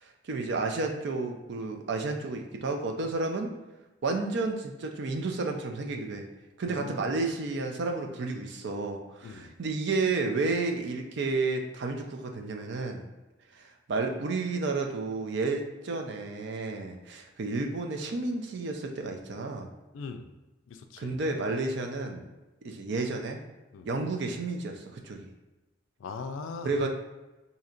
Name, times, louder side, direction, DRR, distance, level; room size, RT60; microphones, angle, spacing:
voice 1, 0.0-3.5 4.0-6.3 6.6-13.0 13.5-19.7 21.0-22.3 22.6-23.4 23.9-25.3 26.6-26.9, right 3 dB, 60° right, 3 dB, 0.4 m, -31 dB
voice 2, 6.7-7.1 9.2-9.5 19.9-20.3 20.7-21.2 23.7-23.9 26.0-26.9, left 4 dB, 80° left, 7 dB, 0.3 m, -40 dB
2.8 x 2.5 x 4.2 m, 1.1 s
head